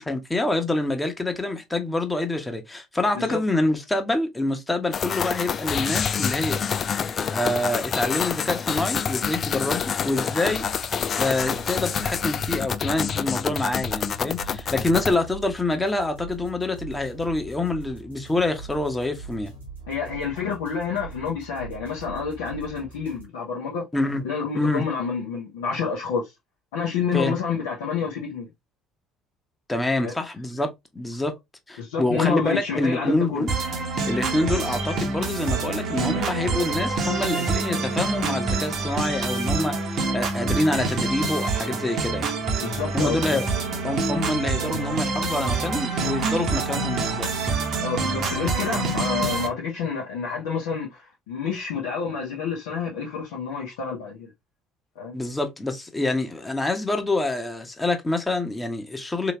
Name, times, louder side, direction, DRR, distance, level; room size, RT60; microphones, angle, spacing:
voice 1, 0.0-6.6 7.3-10.7 11.1-19.5 23.9-24.2 24.5-24.8 27.1-27.3 29.7-31.3 31.7-33.5 34.1-42.3 42.9-43.5 43.8-47.5 55.1-59.3, left 2 dB, 15° left, 1.0 m, -26 dB
sound 1, 4.9-15.2, left 7 dB, 40° left, 0.3 m, -27 dB
sound 2, 6.7-23.2, right 4 dB, 85° right, 1.2 m, -43 dB
voice 2, 19.9-23.8 24.2-26.2 26.7-28.5 30.0-30.1 31.8-33.4 42.6-43.4 47.8-54.3 55.0-55.1, left 6 dB, 70° left, 0.9 m, -28 dB
sound 3, 33.5-49.5, right 3 dB, 50° right, 0.9 m, -26 dB
3.3 x 3.0 x 2.9 m
figure-of-eight pair, 55°, 0 cm